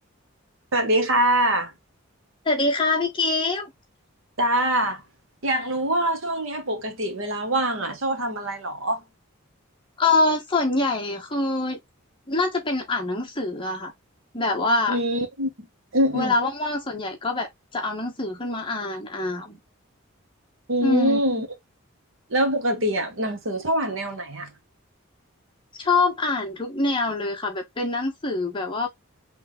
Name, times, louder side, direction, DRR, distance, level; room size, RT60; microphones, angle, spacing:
voice 1, 0.7-1.7 4.4-5.0 5.4-9.0 14.9-15.7 15.9-16.3 20.7-21.5 22.3-24.5, right 1 dB, 65° right, 1.3 m, -24 dB
voice 2, 2.4-3.7 10.0-11.8 12.3-13.9 14.3-15.0 16.1-17.5 17.7-19.6 20.8-21.2 25.8-28.9, left 3 dB, 25° left, 1.3 m, -24 dB
3.7 x 3.4 x 3.7 m
head